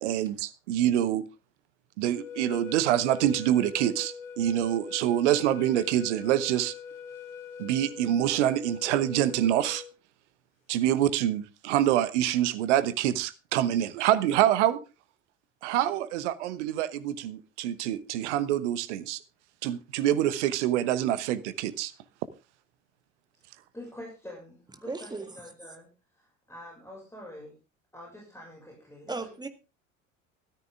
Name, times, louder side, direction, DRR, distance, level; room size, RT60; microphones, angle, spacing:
voice 1, 0.0-1.2 2.0-6.7 7.6-9.8 10.7-14.8 15.6-19.2 19.6-21.9, right 12 dB, 60° right, 1.1 m, -26 dB
sound 1, 2.1-9.9, left 6 dB, 75° left, 1.0 m, -42 dB
voice 2, 23.7-27.6 27.9-29.3, left 1 dB, 5° left, 6.1 m, -46 dB
voice 3, 24.9-25.5 29.1-29.5, right 3 dB, 10° right, 1.8 m, -36 dB
13.5 x 13.5 x 3.6 m
figure-of-eight pair, 70°, 39 cm